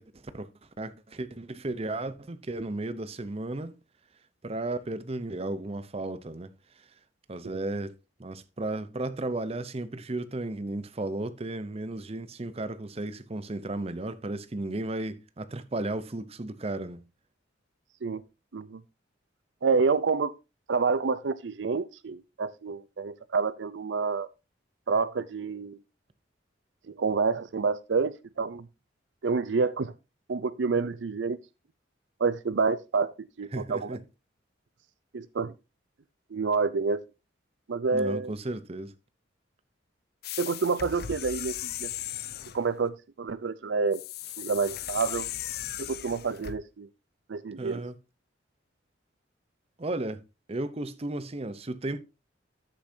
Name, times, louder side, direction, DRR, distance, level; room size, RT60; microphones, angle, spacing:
voice 1, 0.0-3.8 4.4-6.5 6.8-6.9 7.3-7.9 8.2-17.1 33.5-34.0 37.9-38.9 47.6-48.0 49.8-50.2 50.5-52.0, right 2 dB, 30° right, 0.7 m, -34 dB
voice 2, 19.6-20.3 20.7-24.3 24.9-25.8 27.0-28.7 29.2-29.9 30.3-31.4 32.2-33.1 33.4-34.0 35.1-35.5 36.3-37.0 37.7-38.3 40.4-41.9 42.5-44.0 44.4-45.3 45.8-46.9 47.3-47.9, right 4 dB, 70° right, 0.5 m, -28 dB
sound 1, 40.2-42.6 43.9-46.6, left 11 dB, 55° left, 0.5 m, -37 dB
13.0 x 7.0 x 2.7 m
head